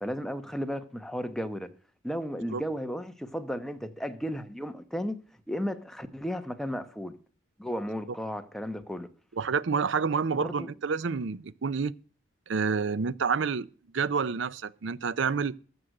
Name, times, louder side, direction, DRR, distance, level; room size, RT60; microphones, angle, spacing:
voice 1, 0.0-1.7 2.0-5.2 5.5-7.1 7.6-9.1 10.3-10.7, equal, ahead, 1.0 m, -34 dB
voice 2, 9.3-11.9 12.5-13.7 13.9-15.5, right 5 dB, 65° right, 0.5 m, -28 dB
14.5 x 6.3 x 6.5 m
head